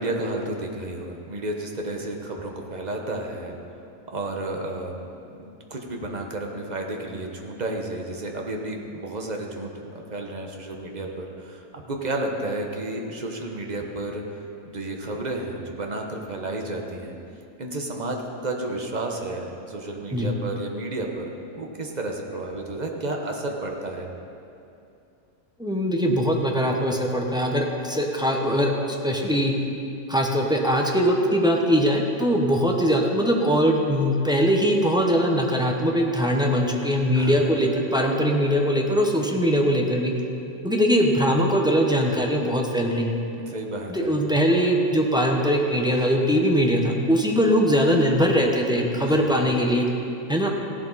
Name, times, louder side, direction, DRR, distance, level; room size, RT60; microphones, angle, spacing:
voice 1, 0.0-3.6 4.1-5.1 5.4-9.7 10.1-14.2 14.6-17.2 17.6-24.1 37.1-37.5 43.5-44.1 49.0-49.4, right 2 dB, 30° right, 1 dB, 1.3 m, -32 dB
voice 2, 25.6-28.7 29.0-29.5 30.1-40.1 40.6-43.1 43.9-49.9 50.3-50.5, equal, 5° right, 0 dB, 0.9 m, -21 dB
16.0 x 11.5 x 4.2 m, 2.6 s
omnidirectional pair, 1.5 m